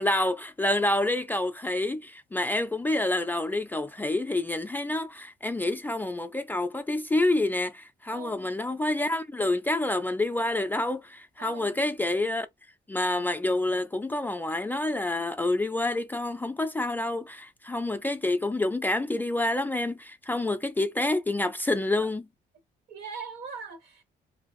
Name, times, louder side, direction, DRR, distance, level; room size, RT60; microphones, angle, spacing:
voice 1, 0.0-12.5 12.9-22.2, left 2 dB, 10° left, 0.3 m, -28 dB
voice 2, 8.1-8.5 11.4-11.8 22.9-24.0, right 5 dB, 75° right, 1.3 m, -41 dB
3.2 x 2.6 x 2.4 m
cardioid pair, 110°, 17 cm